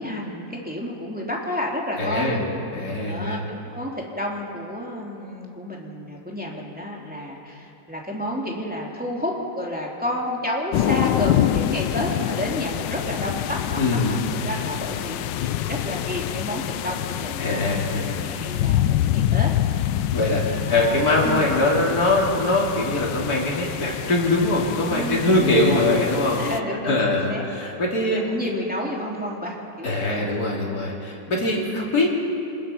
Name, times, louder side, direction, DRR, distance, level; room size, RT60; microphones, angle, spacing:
voice 1, 0.0-2.5 2.8-19.5 20.5-21.5 24.9-25.8 26.4-27.4 28.1-30.2, equal, 5° right, -2 dB, 2.8 m, -31 dB
voice 2, 2.0-2.4 2.7-3.4 13.8-14.2 17.4-18.3 20.1-26.4 26.9-28.4 29.8-32.1, left 2 dB, 55° left, -3 dB, 3.5 m, -22 dB
sound 1, 10.7-26.6, left 12 dB, 80° left, 1.3 m, -26 dB
27.0 x 20.0 x 5.7 m, 2.9 s
omnidirectional pair, 2.0 m